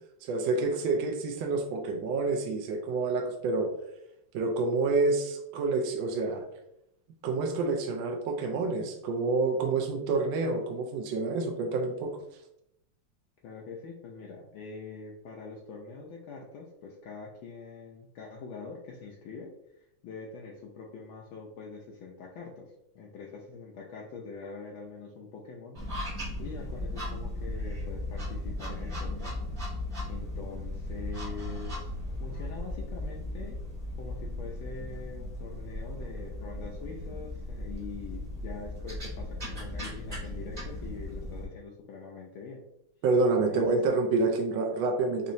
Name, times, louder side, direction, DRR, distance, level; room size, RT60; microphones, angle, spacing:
voice 1, 0.2-3.7 4.3-6.4 7.2-12.1 43.0-45.3, right 3 dB, 75° right, 2 dB, 1.1 m, -28 dB
voice 2, 13.4-22.7 22.9-25.8 26.4-29.4 30.1-31.9 32.2-33.6 34.0-42.6 43.4-43.6, left 4 dB, 75° left, -2 dB, 1.3 m, -44 dB
sound 1, 25.8-41.4, left 1 dB, 25° right, 0.9 m, -37 dB
4.2 x 2.9 x 2.6 m, 0.80 s
omnidirectional pair, 2.4 m